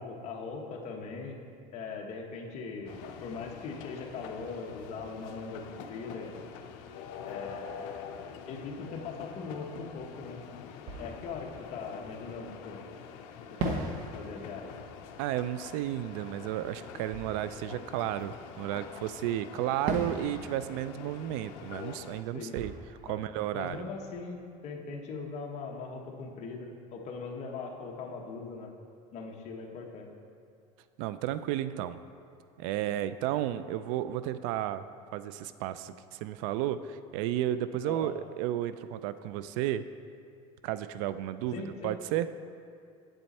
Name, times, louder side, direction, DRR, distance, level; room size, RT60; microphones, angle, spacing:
voice 1, 0.0-1.4 1.7-6.4 7.2-7.8 8.5-10.4 11.0-12.8 13.5-14.7 22.3-22.6 23.1-23.2 23.5-28.7 29.1-30.1 37.8-38.1 41.5-42.0, left 4 dB, 45° left, 1 dB, 1.1 m, -40 dB
sound 1, 2.8-22.2, left 7 dB, 75° left, 0.6 m, -46 dB
Fireworks, 10.2-10.3 10.8-12.8 13.6-18.9 19.9-24.6, right 2 dB, 60° right, 1.1 m, -41 dB
voice 2, 15.2-22.7 23.0-23.8 31.0-32.0 32.6-34.8 35.1-39.8 40.6-42.3, right 12 dB, 75° right, 13 dB, 0.4 m, -33 dB
8.0 x 7.7 x 4.2 m, 2.4 s
cardioid pair, 140°, 16 cm